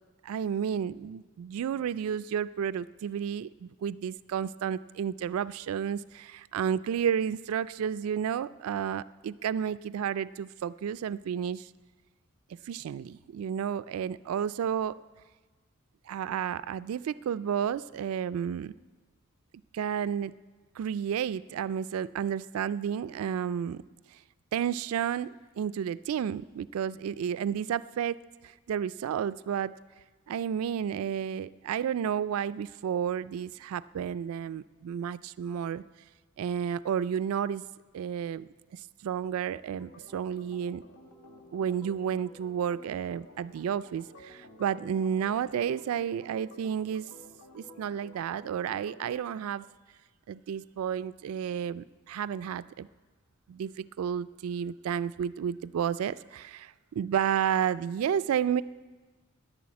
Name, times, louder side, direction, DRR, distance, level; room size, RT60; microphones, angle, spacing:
voice 1, 0.2-11.7 12.5-15.0 16.1-18.7 19.7-20.3 20.8-23.8 24.5-29.7 30.3-35.8 36.4-37.6 37.9-40.8 41.5-47.1 47.5-49.7 50.3-52.9 53.5-58.6, right 8 dB, 75° right, 18 dB, 0.3 m, -31 dB
Organ, 39.8-49.2, left 1 dB, 90° left, 1.4 m, -53 dB
11.0 x 10.5 x 8.6 m, 1.4 s
head